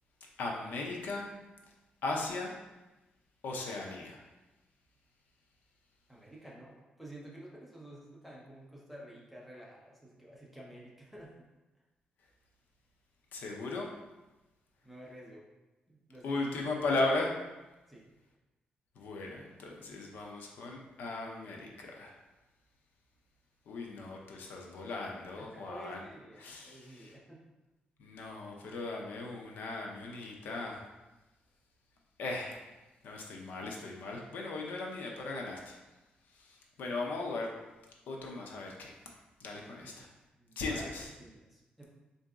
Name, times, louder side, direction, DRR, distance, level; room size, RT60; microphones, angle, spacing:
voice 1, 0.4-1.3 2.0-2.5 3.4-4.2 13.3-13.9 16.2-17.3 19.0-22.2 23.7-26.0 26.4-27.2 28.0-30.8 32.2-32.6 33.0-35.7 36.4-37.5 38.1-38.9 39.4-40.1 40.6-41.1, left 2 dB, 75° left, 0 dB, 0.6 m, -37 dB
voice 2, 6.1-11.4 14.8-15.4 15.9-16.4 17.9-18.0 25.4-27.4 39.8-40.1 40.3-40.9 41.2-41.8, right 1 dB, ahead, -4 dB, 0.6 m, -51 dB
3.7 x 2.7 x 3.5 m, 1.1 s
wide cardioid pair, 180°, 3 cm